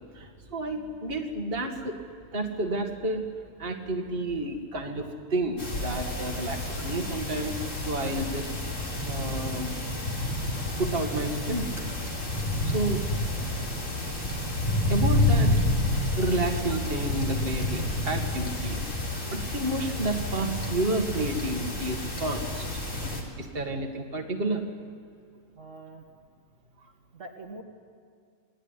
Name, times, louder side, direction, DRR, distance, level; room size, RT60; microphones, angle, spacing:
voice 1, 0.1-2.0 2.3-3.3 3.6-7.6 7.9-8.5 9.0-9.8 10.8-11.7 12.6-13.1 14.9-15.6 16.1-18.8 19.3-22.8 23.4-24.6, right 2 dB, 40° right, 3 dB, 2.3 m, -30 dB
sound 1, 5.6-23.2, left 1 dB, 55° left, 4.3 m, -29 dB
voice 2, 25.6-26.1 27.1-27.6, right 2 dB, 55° right, 1 dB, 2.2 m, -43 dB
28.0 x 20.0 x 9.9 m, 2.2 s
omnidirectional pair, 1.5 m